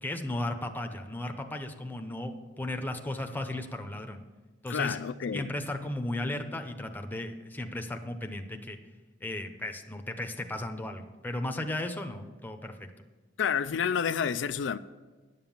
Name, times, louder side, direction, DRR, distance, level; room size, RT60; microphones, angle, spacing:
voice 1, 0.0-4.2 4.6-5.0 5.3-8.8 9.2-12.9, left 1 dB, 10° left, 0.8 m, -35 dB
voice 2, 4.7-5.5 13.4-14.8, left 7 dB, 90° left, 0.4 m, -29 dB
10.5 x 7.3 x 7.2 m
head